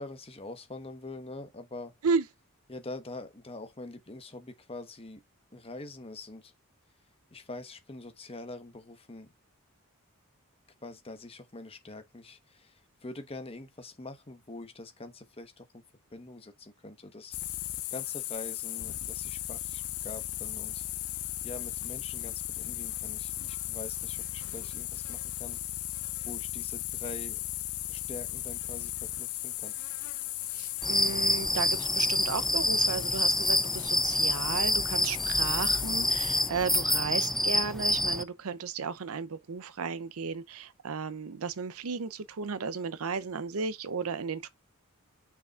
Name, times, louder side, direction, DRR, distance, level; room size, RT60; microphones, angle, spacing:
voice 1, 0.0-2.0 2.7-5.2 5.5-6.5 7.3-9.3 10.8-15.8 16.1-17.4 17.9-20.9 21.4-25.6 26.2-27.4 27.9-29.8 37.1-37.5, left 2 dB, 25° left, 1.1 m, -44 dB
sound 1, 17.3-36.5, left 15 dB, 70° left, 0.6 m, -36 dB
voice 2, 30.5-44.5, right 5 dB, 70° right, 0.6 m, -34 dB
sound 2, 30.8-38.2, left 1 dB, ahead, 0.3 m, -27 dB
6.8 x 5.8 x 2.4 m
head